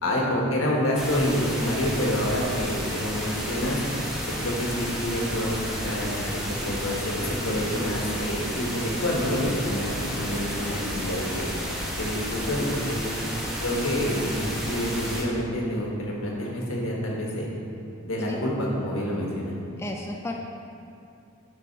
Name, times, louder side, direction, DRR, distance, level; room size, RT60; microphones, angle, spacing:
voice 1, 0.0-3.8 4.3-9.9 10.2-11.5 12.0-13.0 13.6-17.5 18.0-19.5, equal, 80° left, -3 dB, 1.5 m, -28 dB
sound 1, 0.9-15.2, equal, 5° right, 1.2 m, -32 dB
voice 2, 19.8-20.4, left 1 dB, 15° left, 1 dB, 0.4 m, -33 dB
7.0 x 6.2 x 4.6 m, 2.6 s
head